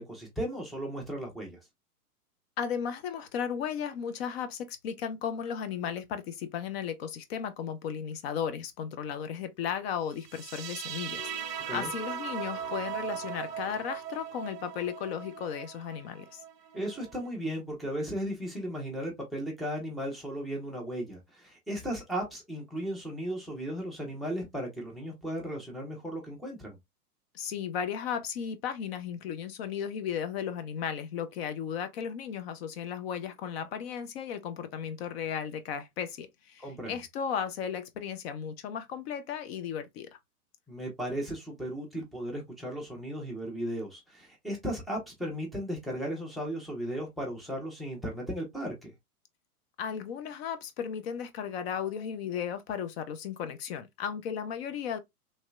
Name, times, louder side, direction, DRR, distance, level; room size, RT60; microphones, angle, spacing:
voice 1, 0.0-1.6 11.7-11.9 16.7-26.8 36.6-36.9 40.7-48.9, equal, ahead, 0.5 m, -36 dB
voice 2, 2.6-16.4 27.3-40.1 49.8-55.0, left 8 dB, 40° left, 0.7 m, -35 dB
sound 1, 10.2-17.3, right 10 dB, 85° right, 0.5 m, -39 dB
sound 2, 11.2-15.0, left 1 dB, 90° left, 1.4 m, -47 dB
3.2 x 2.7 x 2.2 m
hypercardioid pair, 110°, 47 cm